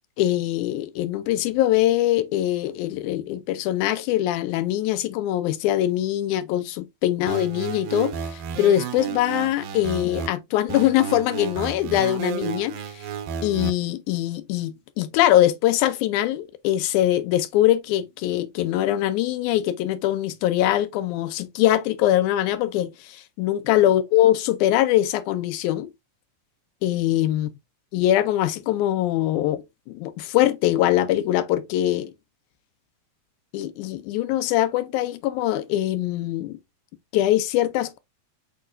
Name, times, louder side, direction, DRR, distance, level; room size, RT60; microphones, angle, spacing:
voice 1, 0.2-13.0 13.4-25.9 26.8-27.5 27.9-32.1 33.5-36.6 37.1-38.0, left 13 dB, 85° left, 2.0 m, -22 dB
sound 1, 7.3-10.3 10.7-13.7, right 7 dB, 80° right, 1.8 m, -32 dB
6.4 x 2.9 x 2.5 m
omnidirectional pair, 3.5 m